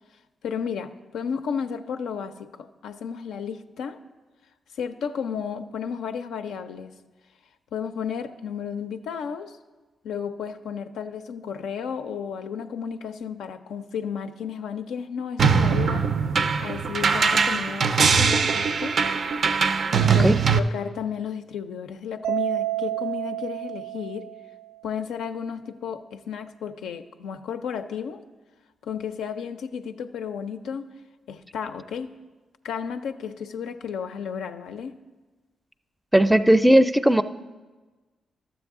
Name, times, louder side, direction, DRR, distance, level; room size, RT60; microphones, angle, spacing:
voice 1, 0.4-4.0 4.7-6.9 7.7-9.6 10.0-16.1 16.6-19.0 20.1-24.3 24.8-28.2 28.8-30.9 31.3-32.1 32.6-35.0, left 7 dB, 85° left, 7 dB, 0.4 m, -33 dB
sound 1, 15.4-20.6, right 5 dB, 65° right, 0.4 m, -21 dB
Mallet percussion, 22.2-24.7, right 15 dB, 90° right, 0.8 m, -30 dB
voice 2, 36.1-37.2, right 1 dB, 5° right, 11 dB, 0.4 m, -17 dB
12.0 x 7.2 x 3.6 m, 1.3 s
supercardioid pair, 55°, 0 cm